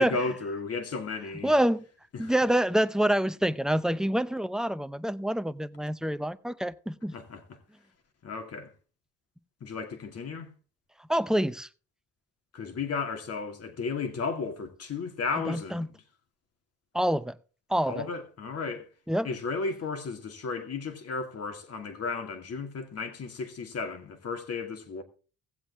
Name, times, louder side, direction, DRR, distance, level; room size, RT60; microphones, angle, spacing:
voice 1, 0.0-1.5 2.1-2.3 7.1-7.6 8.2-8.7 9.6-10.5 12.5-16.0 17.9-18.9 19.2-25.0, left 4 dB, 55° left, 2.4 m, -34 dB
voice 2, 1.4-1.8 2.2-7.1 11.1-11.7 15.5-15.9 16.9-17.4 17.7-17.9 19.1-19.3, right 1 dB, ahead, 0.6 m, -26 dB
17.0 x 7.8 x 3.5 m
cardioid pair, 90°, 30 cm